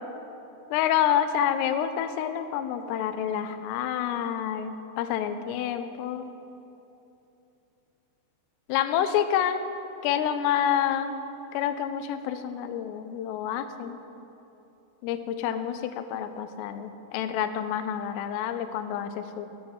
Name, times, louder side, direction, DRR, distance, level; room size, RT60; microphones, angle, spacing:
voice 1, 0.7-6.3 8.7-9.6 10.0-11.2 11.5-14.0 15.0-19.5, left 9 dB, 80° left, 9 dB, 2.6 m, -28 dB
13.0 x 4.5 x 7.1 m, 2.9 s
omnidirectional pair, 5.0 m